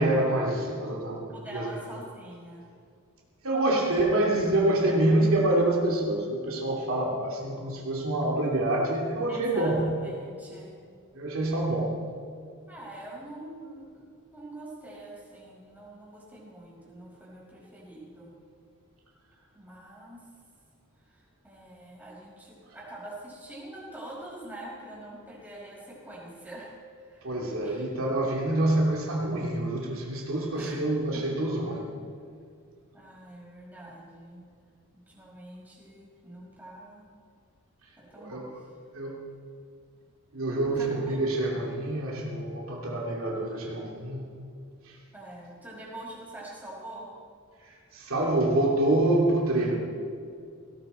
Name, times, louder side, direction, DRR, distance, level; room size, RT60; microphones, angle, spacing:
voice 1, 0.0-1.8 3.4-9.9 11.1-12.1 27.2-31.9 38.2-38.6 38.9-39.3 40.3-44.4 44.8-45.0 47.9-49.8, right 1 dB, 70° right, -2 dB, 2.7 m, -26 dB
voice 2, 1.3-2.7 9.3-10.8 12.7-14.0 14.3-18.3 19.5-20.2 21.1-27.9 30.5-30.8 31.1-31.2 32.9-34.5 34.9-37.1 38.0-38.7 40.7-41.2 45.1-47.1, right 1 dB, 10° right, -5 dB, 5.3 m, -45 dB
18.0 x 17.0 x 4.3 m, 2.3 s
head